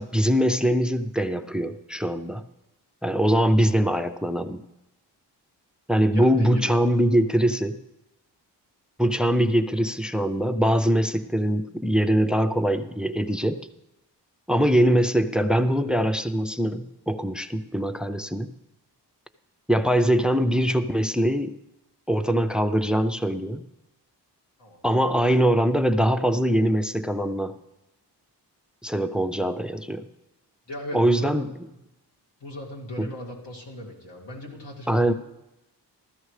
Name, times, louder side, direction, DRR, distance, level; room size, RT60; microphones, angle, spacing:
voice 1, 0.0-2.5 3.0-4.6 5.9-7.8 9.0-13.7 14.5-18.5 19.7-21.5 22.1-23.6 24.8-27.6 28.8-30.1 30.9-31.5 33.0-33.1 34.9-35.1, equal, ahead, 11 dB, 0.4 m, -22 dB
voice 2, 6.1-6.8 24.6-24.8 30.7-31.5 32.4-35.1, left 1 dB, 80° left, -2 dB, 2.3 m, -37 dB
15.0 x 13.0 x 3.2 m, 0.92 s
wide cardioid pair, 110°, 42 cm